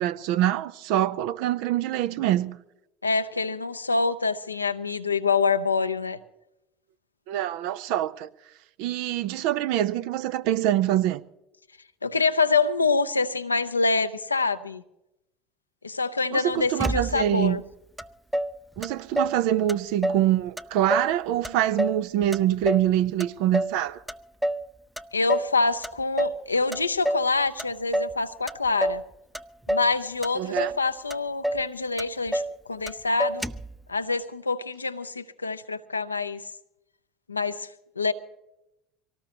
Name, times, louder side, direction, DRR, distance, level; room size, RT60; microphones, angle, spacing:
voice 1, 0.0-2.6 7.3-8.3 8.8-11.2 16.3-17.6 18.8-24.0 30.4-30.7, right 12 dB, 65° right, 0.6 m, -25 dB
voice 2, 3.0-6.2 12.0-14.8 15.8-17.6 25.1-29.0 29.7-32.4 32.7-33.4 33.9-36.4 37.3-37.7 38.0-38.1, left 4 dB, 90° left, 0.6 m, -26 dB
Motor vehicle (road), 16.8-17.5 18.0-18.1 18.3-19.4 19.7-20.3 20.6-21.2 21.4-22.9 23.2-23.8 24.1-24.7 25.0-25.5 25.8-26.4 26.7-27.3 27.6-28.2 28.5-29.1 29.3-29.9 30.2-30.8 31.1-31.2 31.4-31.7 32.0-32.6 32.9-33.0 33.2-33.7, right 1 dB, 5° right, 0.5 m, -28 dB
24.5 x 18.0 x 2.9 m
figure-of-eight pair, 65°, 0 cm